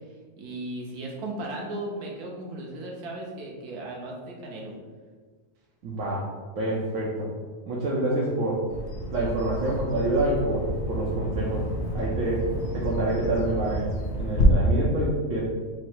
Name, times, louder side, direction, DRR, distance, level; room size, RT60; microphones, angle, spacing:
voice 1, 0.4-4.7, right 1 dB, 85° right, -2 dB, 1.4 m, -36 dB
voice 2, 5.8-6.3 6.5-7.3 7.7-8.6 9.1-11.6 11.9-12.4 12.7-15.4, right 1 dB, 65° right, -6 dB, 1.1 m, -27 dB
Bird vocalization bird call bird song, 8.7-14.4, left 1 dB, 50° left, 0.8 m, -31 dB
4.6 x 2.1 x 4.4 m, 1.5 s
omnidirectional pair, 1.6 m